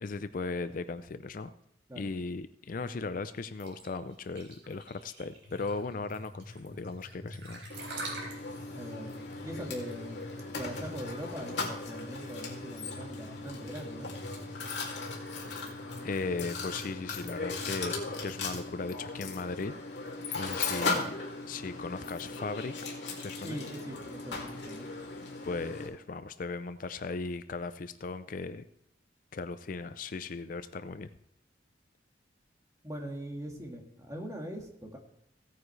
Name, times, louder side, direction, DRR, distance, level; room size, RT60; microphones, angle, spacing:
voice 1, 0.0-1.5 2.0-7.7 15.5-15.6 16.0-21.1 21.5-22.7 23.2-23.6 25.4-28.6 29.3-31.1, left 4 dB, 45° left, 12 dB, 0.4 m, -37 dB
sound 1, 3.6-11.3, right 2 dB, 65° right, 4.0 m, -45 dB
sound 2, 5.4-18.5, left 1 dB, 10° left, 5.4 m, -48 dB
Mechanisms, 7.7-25.9, left 3 dB, 70° left, 2.5 m, -38 dB
voice 2, 8.7-9.2 9.4-10.2 10.6-14.1 23.4-24.9 32.8-35.0, equal, 15° right, 1 dB, 1.7 m, -41 dB
16.0 x 9.3 x 3.2 m, 0.77 s
head